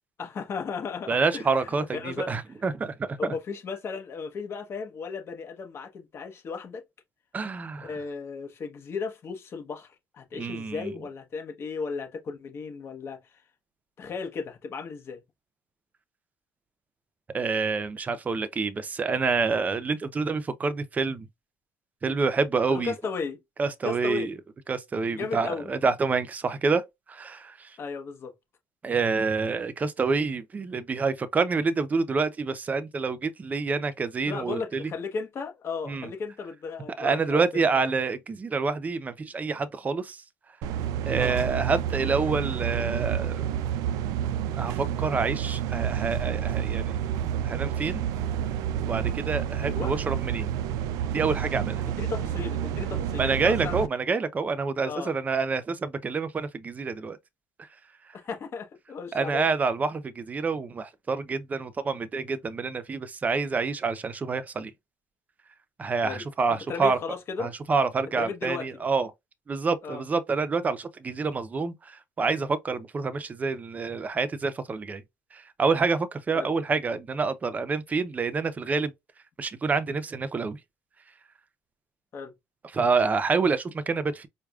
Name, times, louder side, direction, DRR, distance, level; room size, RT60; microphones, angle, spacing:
voice 1, 0.2-2.3 3.2-6.8 7.8-13.4 14.0-15.2 22.7-23.4 23.8-24.3 25.1-25.7 27.8-28.3 34.3-37.8 41.2-41.5 49.6-49.9 51.9-53.8 54.8-55.1 58.1-59.5 66.0-67.5 68.2-68.8 69.8-70.0 76.3-76.5 82.1-82.3, left 5 dB, 45° left, 1.1 m, -35 dB
voice 2, 1.1-3.2 7.3-7.9 10.4-10.9 17.3-21.3 22.0-22.9 23.6-24.3 24.7-26.8 27.1-27.7 28.8-34.9 35.9-36.1 37.0-40.2 41.1-43.3 44.5-47.0 47.4-48.0 48.8-50.5 51.1-51.8 53.2-57.2 59.1-64.7 65.8-67.0 67.4-69.1 69.5-75.0 75.3-78.9 79.4-80.6 82.7-84.3, right 4 dB, 25° right, 0.6 m, -27 dB
sound 1, 40.6-53.9, right 10 dB, 80° right, 0.4 m, -29 dB
4.6 x 2.2 x 2.4 m
cardioid pair, 105°, 6 cm